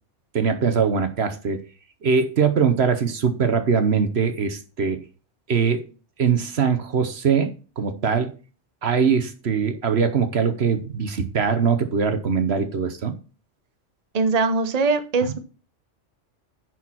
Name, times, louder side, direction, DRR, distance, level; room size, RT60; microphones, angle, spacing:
voice 1, 0.3-1.6 2.0-5.0 5.5-5.9 6.2-8.3 8.8-13.1 15.2-15.3, right 6 dB, 60° right, 1.2 m, -22 dB
voice 2, 14.1-15.4, right 4 dB, 35° right, 1.0 m, -21 dB
10.0 x 4.7 x 5.8 m
omnidirectional pair, 1.3 m